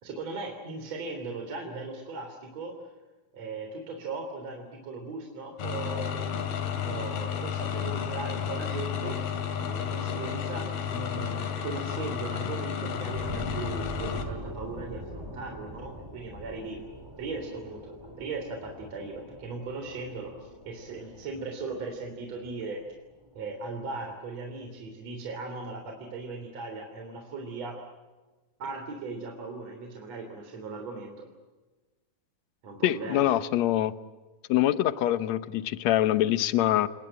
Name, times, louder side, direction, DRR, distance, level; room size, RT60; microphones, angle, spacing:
voice 1, 0.0-2.7 3.3-6.2 6.9-9.2 9.7-16.8 17.2-20.3 20.7-22.8 23.3-27.8 28.6-31.3 32.6-33.3, right 3 dB, 45° right, 3 dB, 4.3 m, -38 dB
sound 1, 5.6-14.3, left 8 dB, 90° left, 4.3 m, -32 dB
sound 2, 13.2-24.2 24.6-24.7, equal, 5° right, 4.1 m, -43 dB
voice 2, 32.8-33.9 34.5-36.9, left 13 dB, 70° left, 14 dB, 1.7 m, -24 dB
29.5 x 20.0 x 8.9 m, 1.2 s
omnidirectional pair, 4.2 m